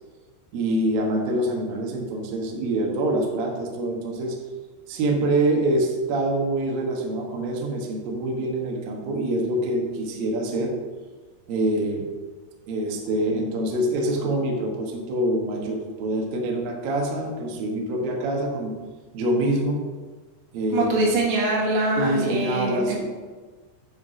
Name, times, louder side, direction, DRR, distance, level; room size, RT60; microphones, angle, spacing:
voice 1, 0.5-4.4 4.9-10.7 11.5-12.1 12.7-18.7 19.1-19.8 20.5-20.9 22.0-23.0, right 1 dB, 70° right, 0 dB, 2.2 m, -25 dB
voice 2, 20.7-23.0, right 2 dB, 85° right, -3 dB, 4.5 m, -23 dB
8.9 x 4.7 x 6.1 m, 1.4 s
omnidirectional pair, 5.8 m